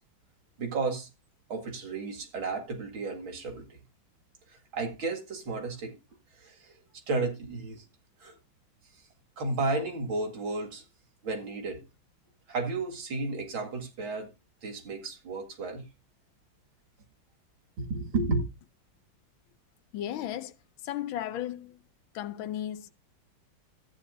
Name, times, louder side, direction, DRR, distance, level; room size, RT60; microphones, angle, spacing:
voice 1, 0.6-1.1 1.5-3.6 4.7-5.9 6.4-6.7 7.1-7.8 8.2-8.4 9.4-10.8 11.2-11.8 12.5-14.3 14.6-15.8 17.8-18.4, right 3 dB, 80° right, 2.8 m, -32 dB
voice 2, 19.9-20.6 20.8-21.8 22.1-22.9, left 11 dB, 80° left, 1.5 m, -35 dB
14.5 x 9.2 x 2.6 m
omnidirectional pair, 2.2 m